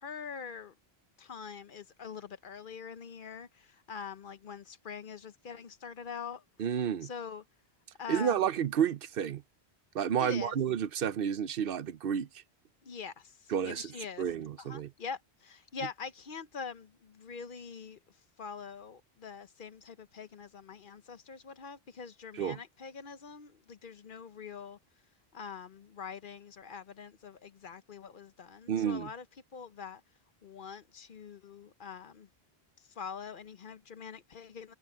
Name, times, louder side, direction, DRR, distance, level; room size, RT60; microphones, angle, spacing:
voice 1, 0.0-0.7 1.2-6.4 7.0-7.4 8.0-8.5 10.2-10.6 12.8-14.3 14.6-18.0 18.4-24.8 25.3-29.2 29.5-30.0 30.4-32.3 33.0-34.7, left 6 dB, 55° left, 0.9 m, -44 dB
voice 2, 6.6-7.1 8.1-9.4 9.9-12.3 13.5-13.9 14.2-14.9 22.3-22.6 28.7-29.1, right 8 dB, 65° right, 0.9 m, -30 dB
omnidirectional pair, 1.1 m